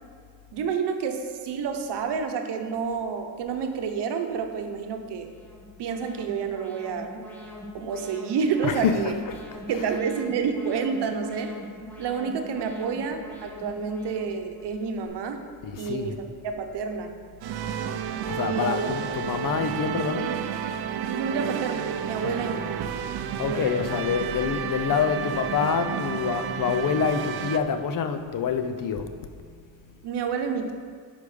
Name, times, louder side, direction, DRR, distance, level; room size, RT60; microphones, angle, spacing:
voice 1, 0.5-5.3 5.8-7.1 7.7-9.1 9.7-11.6 12.0-15.5 15.8-17.2 18.4-18.9 21.1-22.7 23.4-23.9 30.0-30.7, right 6 dB, 85° right, 0.9 m, -29 dB
Alarm, 5.2-15.1, equal, 5° left, 1.3 m, -43 dB
voice 2, 8.6-10.0 15.6-16.2 18.3-20.4 22.2-22.4 23.4-29.7, left 6 dB, 55° left, 0.6 m, -27 dB
sound 1, 17.4-27.6, right 8 dB, 70° right, 0.6 m, -31 dB
8.4 x 5.6 x 5.0 m
cardioid pair, 160°, 40 cm